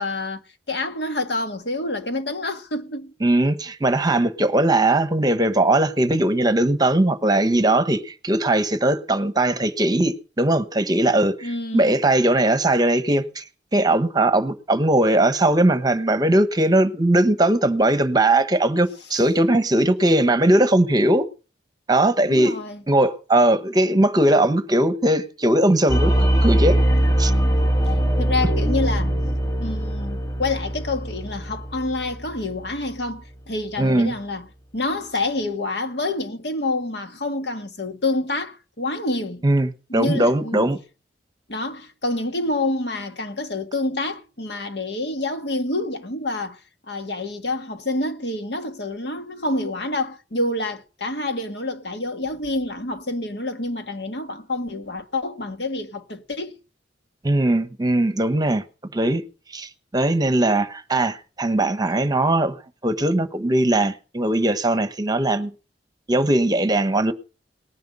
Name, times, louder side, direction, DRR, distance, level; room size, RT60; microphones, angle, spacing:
voice 1, 0.0-3.1 11.4-12.0 19.1-19.2 22.3-22.8 28.2-29.1 29.6-34.5 34.7-39.4 39.9-40.7 41.5-46.6 46.9-56.6, left 2 dB, 70° left, 1.7 m, -27 dB
voice 2, 3.2-13.4 13.7-21.3 21.9-22.5 22.9-26.8 27.2-27.3 33.8-34.1 39.4-40.8 57.2-58.6 58.9-59.2 59.5-62.6 62.8-65.5 66.1-67.1, right 1 dB, 25° right, 1.1 m, -19 dB
sound 1, 25.9-32.7, right 1 dB, 20° left, 1.2 m, -21 dB
19.0 x 10.5 x 5.4 m
head